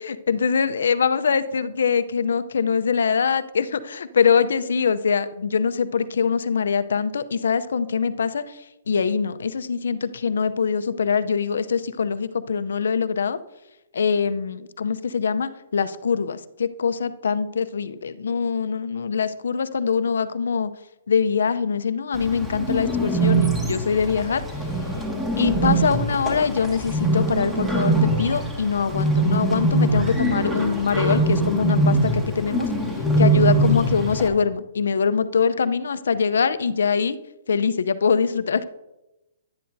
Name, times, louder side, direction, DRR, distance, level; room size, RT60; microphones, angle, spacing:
voice 1, 0.3-13.4 13.9-20.7 21.1-24.4 25.4-32.7 33.2-37.2 37.5-38.6, left 6 dB, 80° left, 13 dB, 0.6 m, -23 dB
Bird, 22.1-34.3, right 2 dB, 5° right, 1.9 m, -22 dB
11.0 x 10.0 x 2.7 m, 0.96 s
hypercardioid pair, 145°, 0 cm